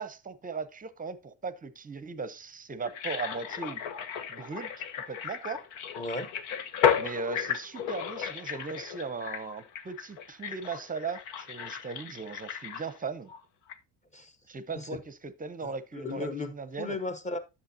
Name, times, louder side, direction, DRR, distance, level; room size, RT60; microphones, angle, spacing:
voice 1, 0.0-3.8 4.3-4.7 5.1-5.6 7.0-13.3 14.5-17.0, right 4 dB, 20° right, 0.7 m, -38 dB
sound 1, 2.8-13.4 13.7-13.8, left 8 dB, 85° left, 1.2 m, -34 dB
voice 2, 6.0-6.3 14.1-14.3 14.7-14.9 15.6-16.5 16.8-17.4, left 2 dB, 15° left, 1.0 m, -35 dB
10.5 x 7.1 x 2.8 m
cardioid pair, 125°, 45 cm